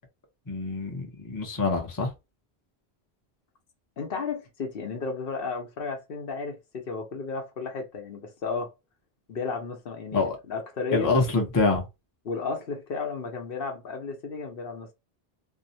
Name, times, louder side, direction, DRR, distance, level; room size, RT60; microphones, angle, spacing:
voice 1, 0.5-2.1 10.1-10.4 10.9-11.8, left 3 dB, 25° left, 0.6 m, -25 dB
voice 2, 4.0-8.7 9.3-11.1 12.2-14.9, left 4 dB, 65° left, 0.9 m, -33 dB
2.6 x 2.0 x 2.6 m
omnidirectional pair, 1.1 m